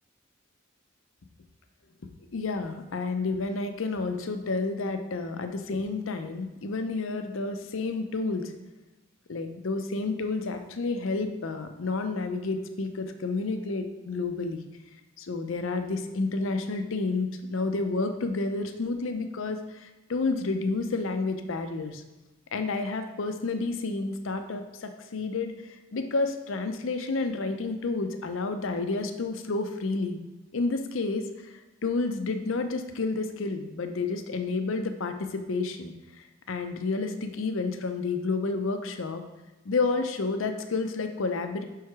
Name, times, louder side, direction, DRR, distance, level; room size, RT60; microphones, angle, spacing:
voice 1, 2.3-8.5 9.3-14.6 15.2-22.0 22.5-30.2 30.5-39.2 39.6-41.6, left 3 dB, 65° left, 7 dB, 0.6 m, -30 dB
5.6 x 4.7 x 4.7 m, 1.1 s
head